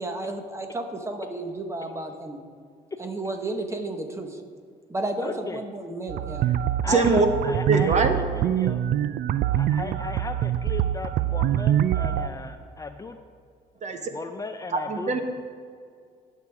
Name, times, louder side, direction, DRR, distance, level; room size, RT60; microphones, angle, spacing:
voice 1, 0.0-2.4 3.0-4.4 4.9-6.5, right 2 dB, 15° right, 5 dB, 1.3 m, -32 dB
voice 2, 5.2-5.6 6.4-6.6 6.8-8.8 9.5-13.2 14.1-15.1, left 4 dB, 20° left, 7 dB, 0.5 m, -35 dB
sound 1, 6.1-12.3, right 11 dB, 60° right, 0.4 m, -25 dB
voice 3, 6.9-7.3 7.7-8.2 13.8-14.0 14.7-15.2, right 4 dB, 45° right, 6 dB, 1.0 m, -22 dB
17.0 x 6.7 x 3.6 m, 2.1 s
cardioid pair, 110°, 17 cm